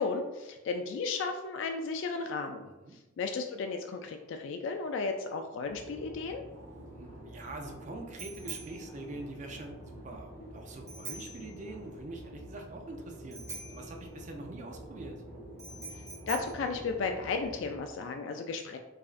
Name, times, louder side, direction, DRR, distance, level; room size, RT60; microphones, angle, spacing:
voice 1, 0.0-2.7 3.2-6.4 16.3-18.8, left 4 dB, 70° left, 5 dB, 0.3 m, -34 dB
voice 2, 2.6-3.0 6.9-15.2, right 2 dB, 35° right, 3 dB, 0.4 m, -44 dB
sound 1, 5.6-17.8, equal, 85° right, 1.2 m, -48 dB
Bicycle bell, 6.5-17.7, right 4 dB, 15° right, 0.9 m, -48 dB
4.8 x 2.5 x 2.4 m, 1.1 s
head